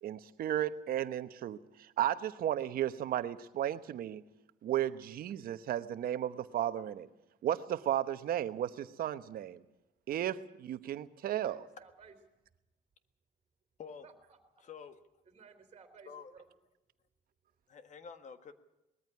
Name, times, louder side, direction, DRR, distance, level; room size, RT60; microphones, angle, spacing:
voice 1, 0.0-4.2 4.6-7.1 7.4-9.6 10.1-11.6, right 11 dB, 60° right, 12 dB, 1.1 m, -34 dB
voice 2, 11.3-12.1 14.0-14.6 15.3-16.4, right 5 dB, 35° right, 6 dB, 3.0 m, -57 dB
voice 3, 14.6-15.0 16.0-16.3 17.7-18.5, left 6 dB, 45° left, 10 dB, 1.6 m, -48 dB
20.5 x 14.0 x 9.7 m, 0.94 s
cardioid pair, 110°, 17 cm